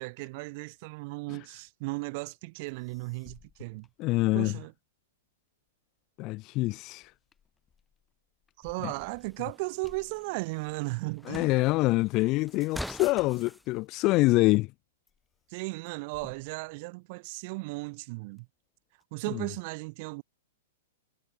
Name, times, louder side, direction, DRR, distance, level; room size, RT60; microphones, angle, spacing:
voice 1, 0.0-3.9 4.3-4.7 8.6-11.5 15.5-18.5 19.1-20.2, right 27 dB, 40° right, 0.8 m, -36 dB
sound 1, 2.4-2.5 2.7-4.8 5.2-13.9 14.4-14.8 15.1-17.6 18.0-19.0, left 7 dB, 15° left, 7.8 m, -63 dB
voice 2, 4.0-4.5 6.2-7.1 8.8-8.9 11.3-14.7 19.3-19.4, left 21 dB, 35° left, 1.2 m, -25 dB
sound 2, 8.6-13.6, equal, ahead, 6.0 m, -45 dB
figure-of-eight pair, 105°, 0 cm